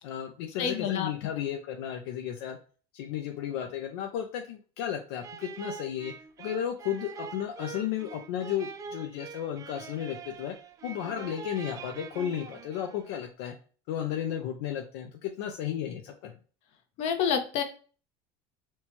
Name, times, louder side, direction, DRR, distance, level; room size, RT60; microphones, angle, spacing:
voice 1, 0.0-2.6 2.9-10.5 10.8-13.5 13.9-16.3, left 10 dB, 80° left, 4 dB, 0.5 m, -34 dB
voice 2, 0.6-1.1 17.0-17.6, left 7 dB, 55° left, 5 dB, 0.8 m, -28 dB
sound 1, 5.2-13.3, right 6 dB, 25° right, 0.3 m, -44 dB
4.4 x 2.2 x 2.9 m, 0.39 s
supercardioid pair, 135°, 13 cm